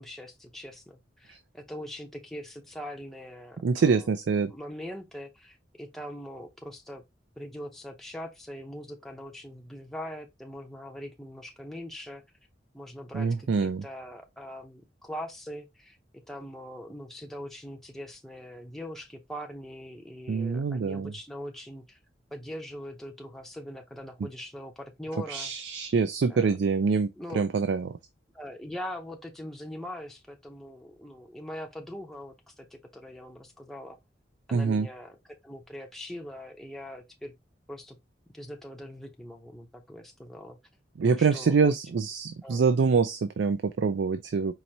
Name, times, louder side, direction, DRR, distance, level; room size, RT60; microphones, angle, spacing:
voice 1, 0.0-4.1 4.5-7.0 7.4-12.2 12.7-16.0 16.3-22.0 22.3-25.5 26.3-26.6 27.2-27.4 28.3-34.0 34.5-35.2 35.4-37.3 37.7-38.0 38.3-40.6 41.1-41.7 42.4-42.6, equal, ahead, 0.6 m, -42 dB
voice 2, 3.6-4.5 13.1-13.8 20.3-21.1 25.3-27.1 27.3-28.0 34.5-34.9 41.0-44.5, right 5 dB, 65° right, 0.4 m, -25 dB
4.6 x 2.6 x 2.7 m
head